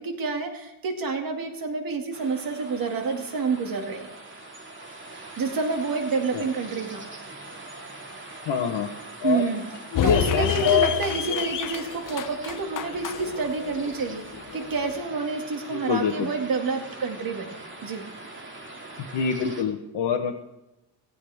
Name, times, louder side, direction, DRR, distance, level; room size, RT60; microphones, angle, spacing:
voice 1, 0.0-4.1 5.1-7.1 9.2-9.6 10.0-14.2 14.5-17.6 17.8-18.0, right 4 dB, 50° right, 4 dB, 2.3 m, -28 dB
sound 1, 2.1-19.6, right 2 dB, 25° right, 2.4 m, -42 dB
voice 2, 8.5-8.9 9.2-9.4 9.9-10.9 15.7-16.3 19.0-20.4, left 7 dB, 65° left, 1 dB, 1.2 m, -25 dB
sound 2, 9.9-15.0, left 10 dB, 45° left, 0.7 m, -30 dB
17.0 x 16.5 x 3.6 m, 0.97 s
cardioid pair, 155°, 45 cm